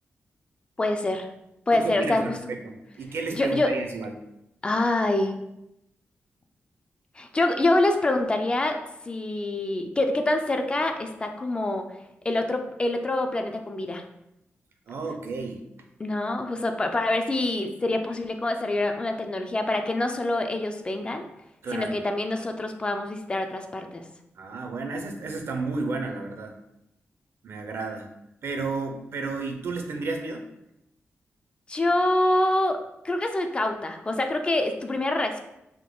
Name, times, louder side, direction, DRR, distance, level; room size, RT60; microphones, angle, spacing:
voice 1, 0.8-1.3 1.7-2.4 3.3-3.7 4.6-5.3 7.2-8.8 9.1-11.9 12.2-14.0 16.0-21.3 21.7-24.0 31.7-32.8 33.0-35.4, left 2 dB, 25° left, 5 dB, 0.3 m, -25 dB
voice 2, 1.7-4.1 14.9-15.6 21.6-22.0 24.4-26.6 27.4-28.1 28.4-30.4, right 3 dB, 65° right, 4 dB, 0.6 m, -32 dB
3.6 x 2.9 x 3.8 m, 0.86 s
wide cardioid pair, 155°, 4 cm